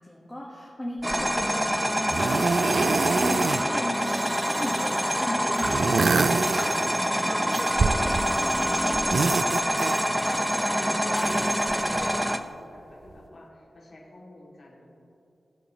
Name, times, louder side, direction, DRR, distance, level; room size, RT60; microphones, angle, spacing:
voice 1, 0.0-9.5, left 1 dB, 15° left, -4 dB, 1.5 m, -37 dB
sound 1, 1.0-12.4, equal, 5° right, 0.5 m, -26 dB
sound 2, 1.1-1.4 2.1-3.6 3.9-5.1 5.6-7.1 7.5-8.6 8.9-10.4 11.2-12.2 13.1-13.2, right 4 dB, 70° right, 0.3 m, -27 dB
sound 3, 4.9-7.4 9.2-11.7 13.3-13.4, left 2 dB, 35° left, 0.9 m, -40 dB
voice 2, 10.2-15.0, left 1 dB, 60° left, -6 dB, 2.6 m, -49 dB
19.5 x 7.8 x 3.1 m, 2.8 s
wide cardioid pair, 115°, 0 cm